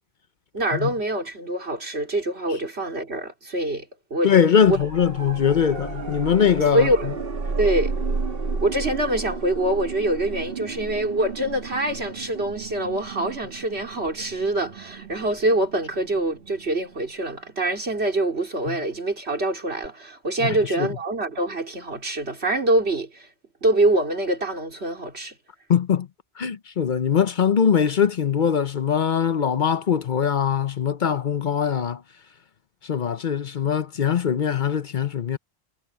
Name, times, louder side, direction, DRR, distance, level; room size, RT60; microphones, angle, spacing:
voice 1, 0.5-4.3 4.7-4.8 6.7-7.1 7.6-7.9 8.6-23.3 23.6-25.3, right 1 dB, 85° right, 3.8 m, -25 dB
voice 2, 4.2-6.9 18.7-18.8 20.4-20.9 25.7-26.1 26.4-32.0 32.8-35.4, left 7 dB, 50° left, 0.8 m, -21 dB
sound 1, 4.6-17.5 19.8-19.9, right 4 dB, 65° right, 1.9 m, -33 dB
omnidirectional pair, 1.1 m